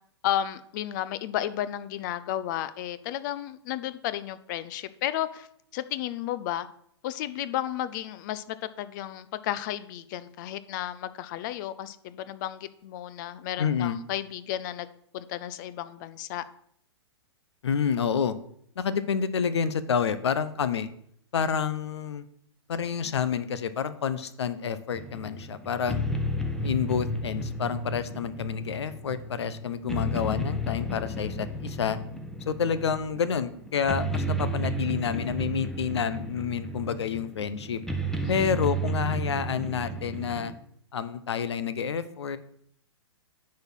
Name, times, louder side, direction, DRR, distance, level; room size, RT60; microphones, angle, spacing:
voice 1, 0.2-5.5 5.7-6.7 7.0-14.9 15.1-16.4 38.2-38.3, left 12 dB, 45° left, 14 dB, 0.6 m, -33 dB
voice 2, 13.6-14.0 17.6-18.4 18.8-20.9 21.3-22.3 22.7-26.0 26.6-32.0 32.5-37.8 38.3-40.5 40.9-42.4, left 7 dB, 70° left, 14 dB, 0.8 m, -29 dB
sound 1, 24.9-40.6, right 1 dB, 5° left, 0.9 m, -33 dB
9.5 x 4.3 x 6.2 m, 0.66 s
hypercardioid pair, 115°, 15 cm